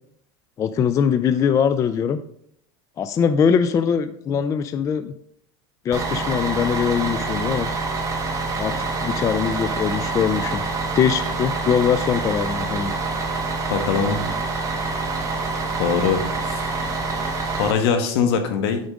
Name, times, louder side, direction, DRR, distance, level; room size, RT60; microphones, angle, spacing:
voice 1, 0.6-2.2 3.0-5.1 5.9-7.7 8.6-10.6 10.9-12.9, left 7 dB, 20° left, 11 dB, 0.3 m, -22 dB
Bus, 5.9-17.7, right 3 dB, 25° right, 1.4 m, -26 dB
voice 2, 13.7-14.2 15.8-16.6 17.6-18.8, left 6 dB, 70° left, 6 dB, 1.4 m, -22 dB
9.0 x 5.0 x 3.6 m, 0.69 s
supercardioid pair, 130°, 14 cm